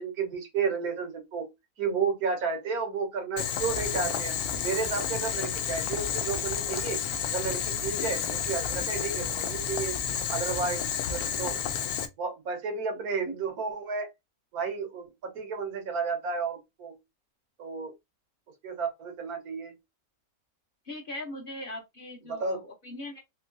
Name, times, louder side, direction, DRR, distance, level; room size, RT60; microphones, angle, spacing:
voice 1, 0.0-1.5 1.8-9.9 10.3-11.6 12.2-14.1 14.5-17.0 17.6-17.9 18.6-19.7 22.3-22.6, right 5 dB, 85° right, 1.6 m, -32 dB
Boiling, 3.4-12.1, left 8 dB, 85° left, 1.1 m, -31 dB
voice 2, 20.8-23.2, left 1 dB, 45° left, 0.9 m, -40 dB
3.6 x 2.9 x 2.6 m
omnidirectional pair, 1.5 m